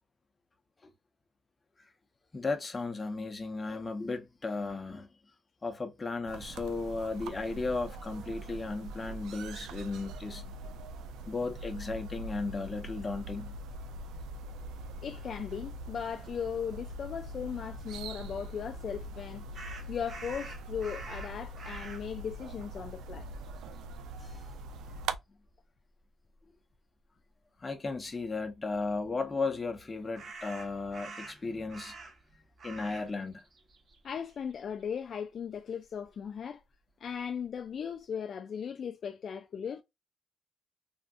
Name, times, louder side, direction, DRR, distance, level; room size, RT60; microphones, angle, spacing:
voice 1, 2.3-5.1 5.6-10.4 11.3-13.5 24.2-24.4 27.6-31.9 32.6-33.4, left 3 dB, 25° left, 0.9 m, -35 dB
sound 1, 6.3-25.2, right 2 dB, 85° right, 0.4 m, -42 dB
voice 2, 15.0-23.3 34.0-36.6 37.0-39.8, left 7 dB, 55° left, 0.3 m, -38 dB
sound 2, 19.5-22.1 22.9-23.1 23.4-24.3 30.1-32.3 32.6-33.1 33.4-35.0, right 3 dB, 55° right, 1.3 m, -46 dB
3.5 x 2.4 x 2.4 m
cardioid pair, 90°, 0 cm